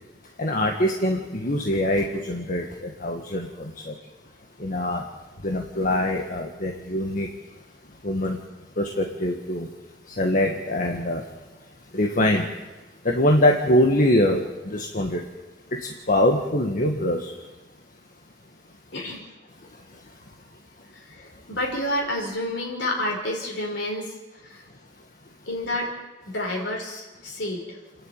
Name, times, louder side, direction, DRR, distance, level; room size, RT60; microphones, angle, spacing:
voice 1, 0.4-3.9 4.6-5.0 5.4-7.3 8.0-8.4 8.8-9.7 10.2-11.2 11.9-12.5 13.0-15.2 15.8-17.3, left 1 dB, 50° left, 2 dB, 1.7 m, -23 dB
voice 2, 18.9-19.2 20.9-24.1 24.4-24.6 25.5-25.9 26.3-27.8, left 1 dB, 75° left, -1 dB, 4.8 m, -29 dB
29.0 x 10.5 x 9.1 m, 1.1 s
head